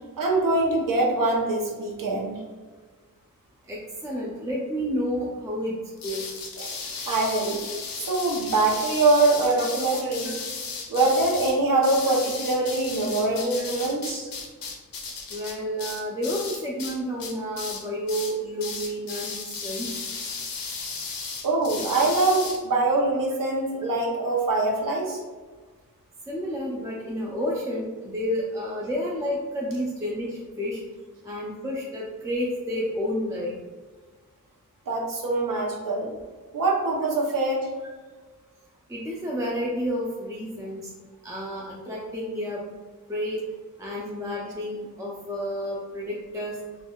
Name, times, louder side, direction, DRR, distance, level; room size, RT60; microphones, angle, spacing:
voice 1, 0.2-2.4 6.6-6.8 7.1-7.6 8.0-10.3 10.9-14.3 21.4-25.2 34.9-36.1 36.5-37.7, right 2 dB, 70° right, -1 dB, 0.7 m, -23 dB
voice 2, 3.7-5.7 6.0-6.2 9.5-9.6 13.5-13.7 15.3-19.4 19.6-19.9 26.3-30.8 31.3-33.6 38.9-40.8 41.2-42.6 43.1-43.4 43.8-46.6, equal, 10° right, -4 dB, 0.4 m, -30 dB
sound 1, 6.0-16.9 17.2-17.8 18.1-18.3 18.6-22.6, left 4 dB, 75° left, 0.6 m, -35 dB
3.4 x 2.2 x 2.2 m, 1.4 s
wide cardioid pair, 95°, 34 cm